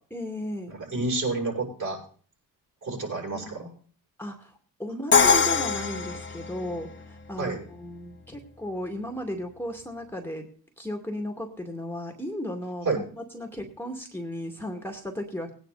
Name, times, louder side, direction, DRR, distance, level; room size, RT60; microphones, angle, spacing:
voice 1, 0.1-0.7 3.3-3.6 4.2-10.5 10.8-15.5, left 1 dB, 5° left, 3 dB, 2.3 m, -35 dB
voice 2, 0.8-2.0 2.8-3.7 7.4-7.6 12.8-13.0, right 3 dB, 50° right, -1 dB, 7.1 m, -29 dB
Crash cymbal, 5.1-7.0, left 5 dB, 30° left, 1.8 m, -22 dB
18.5 x 9.6 x 4.2 m, 0.43 s
supercardioid pair, 60°, 38 cm